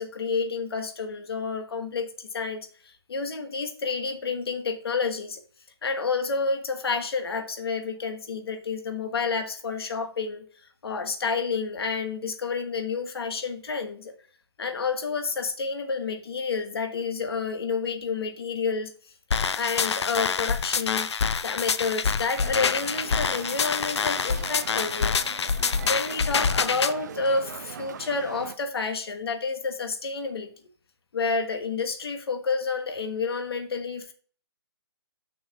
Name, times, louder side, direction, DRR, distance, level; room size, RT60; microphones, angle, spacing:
voice 1, 0.0-5.4 5.8-10.4 10.8-14.1 14.6-18.9 19.5-21.1 21.4-25.2 25.8-30.5 31.1-34.1, left 4 dB, 65° left, 7 dB, 1.3 m, -29 dB
sound 1, 19.3-26.9, left 6 dB, 80° left, 0.6 m, -26 dB
sound 2, 22.3-28.6, right 8 dB, 40° right, 0.5 m, -40 dB
6.0 x 4.2 x 6.2 m, 0.42 s
hypercardioid pair, 160°, 14 cm